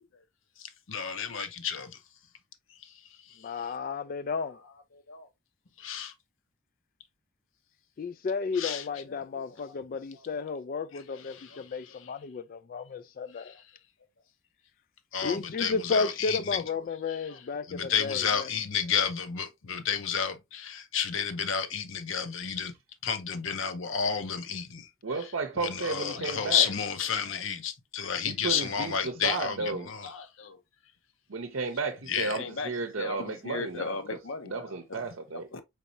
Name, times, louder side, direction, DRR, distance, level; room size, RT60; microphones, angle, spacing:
voice 1, 0.6-1.9 5.1-5.2 5.8-6.1 8.5-9.0 10.9-12.1 13.4-13.5 15.1-16.7 17.2-17.3 17.7-22.7 23.0-30.5 32.0-35.0 35.5-35.6, left 7 dB, 60° left, 0.8 m, -32 dB
voice 2, 3.4-4.6 8.0-13.5 15.2-18.5, left 5 dB, 40° left, 0.3 m, -33 dB
voice 3, 25.0-26.7 28.2-29.9 31.3-35.5, right 3 dB, 60° right, 0.7 m, -33 dB
4.7 x 4.1 x 2.6 m
head